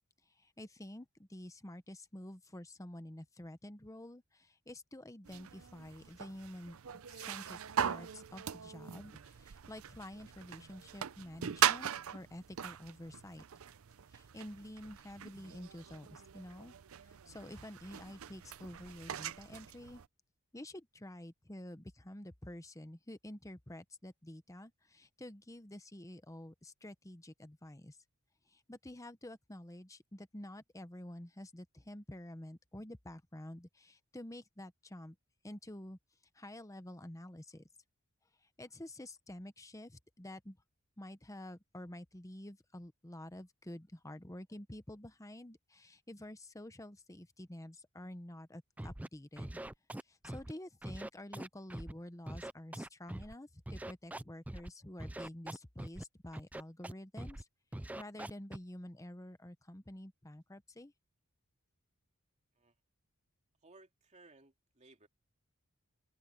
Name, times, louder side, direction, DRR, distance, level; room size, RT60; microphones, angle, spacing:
voice 1, 0.4-6.8 7.1-13.4 14.1-16.7 17.0-20.0 20.5-28.0 28.5-35.1 35.4-36.0 36.3-37.6 38.6-40.6 41.0-49.6 50.1-57.4 57.9-60.9, left 1 dB, 15° left, 1.0 m, -49 dB
sound 1, 5.3-20.1, right 9 dB, 75° right, 0.6 m, -40 dB
Scratching (performance technique), 48.8-49.1 49.4-50.5 50.8-51.9 52.3-53.3 53.7-54.7 55.0-56.0 56.3-56.9 57.2-57.4 57.7-58.6, right 1 dB, 5° right, 0.4 m, -43 dB
voice 2, 63.6-65.1, right 2 dB, 35° right, 2.9 m, -61 dB
head